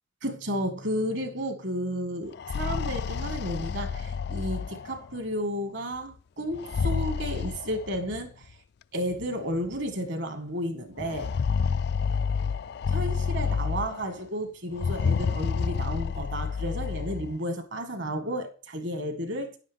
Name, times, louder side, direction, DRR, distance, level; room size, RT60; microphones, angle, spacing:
voice 1, 0.2-8.3 8.9-11.3 12.9-19.6, equal, 55° right, 1.6 m, -32 dB
sound 1, 2.3-5.2 6.5-8.2 9.2-9.3 9.7-9.8 11.0-14.2 14.7-17.3, left 5 dB, 50° left, 0.3 m, -29 dB
10.0 x 7.7 x 3.4 m
head